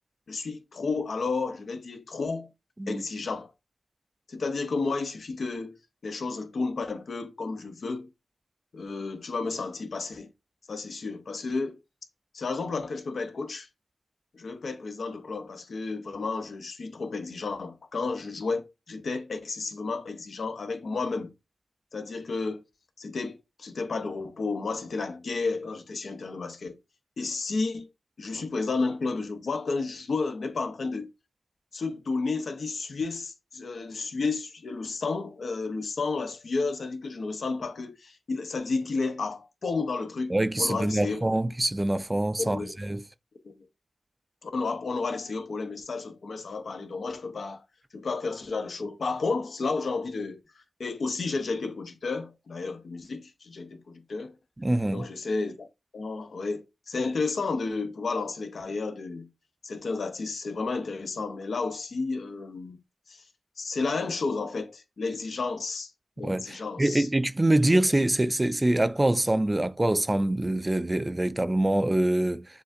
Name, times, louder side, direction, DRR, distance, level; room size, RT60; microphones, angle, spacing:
voice 1, 0.3-2.5 2.9-3.5 4.3-8.1 8.7-10.3 10.7-11.8 12.3-13.7 14.3-21.3 21.9-22.6 23.0-26.8 27.2-27.9 28.2-31.1 31.7-41.3 42.4-42.7 43.4-43.5 44.4-47.6 47.9-50.4 50.8-54.4 54.9-55.7 55.9-59.3 59.6-62.8 63.1-63.2 63.6-65.9 66.2-67.1, left 4 dB, 75° left, 0.7 m, -32 dB
voice 2, 40.3-43.0 54.6-55.1 66.2-72.5, right 1 dB, 25° right, 0.4 m, -25 dB
6.5 x 2.5 x 2.5 m
cardioid pair, 45°, 0 cm